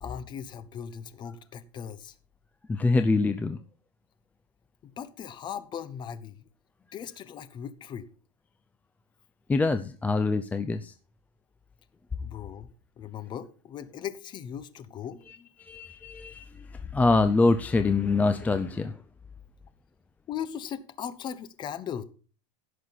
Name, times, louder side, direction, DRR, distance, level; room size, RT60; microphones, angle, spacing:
voice 1, 0.0-2.2 4.8-6.4 6.9-8.1 12.2-15.5 20.3-22.0, left 8 dB, 30° left, 1.1 m, -38 dB
voice 2, 2.7-3.6 9.5-10.9 15.3-16.7 16.9-19.0, left 3 dB, 10° left, 0.5 m, -25 dB
16.0 x 6.4 x 4.1 m
supercardioid pair, 150°, 16 cm